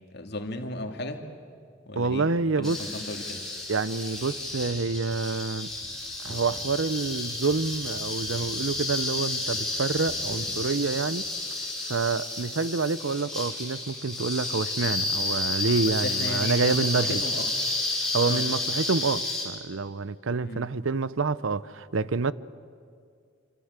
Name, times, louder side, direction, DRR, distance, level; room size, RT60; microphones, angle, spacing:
voice 1, 0.1-1.2 1.9-2.3 2.6-3.4 15.8-17.4 18.2-18.5 20.4-20.7, left 2 dB, 55° left, 2.6 m, -35 dB
voice 2, 2.0-2.8 3.7-5.7 6.2-11.2 11.9-17.2 18.1-22.3, right 4 dB, 90° right, 0.8 m, -27 dB
sound 1, 2.6-19.4, left 2 dB, ahead, 6.2 m, -31 dB
27.0 x 26.0 x 8.2 m
head